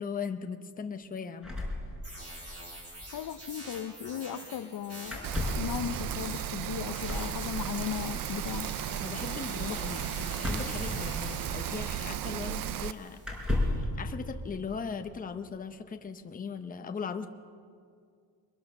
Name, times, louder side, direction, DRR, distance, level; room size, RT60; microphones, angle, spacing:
voice 1, 0.0-1.5 9.0-13.2 13.5-17.3, left 5 dB, 20° left, 6 dB, 0.8 m, -38 dB
sound 1, 1.4-2.5 2.7-2.8 3.0-3.2 5.0-5.8 7.0-7.4 10.4-11.5 12.4-12.5 13.2-13.9, left 1 dB, ahead, 4.8 m, -33 dB
sound 2, 2.0-13.4, right 1 dB, 35° right, 7.0 m, -45 dB
voice 2, 3.1-5.3 5.6-8.7, left 10 dB, 55° left, 11 dB, 0.8 m, -37 dB
Rain, 5.2-12.9, right 11 dB, 55° right, 0.6 m, -35 dB
23.0 x 21.5 x 6.6 m, 2.2 s
cardioid pair, 170°, 42 cm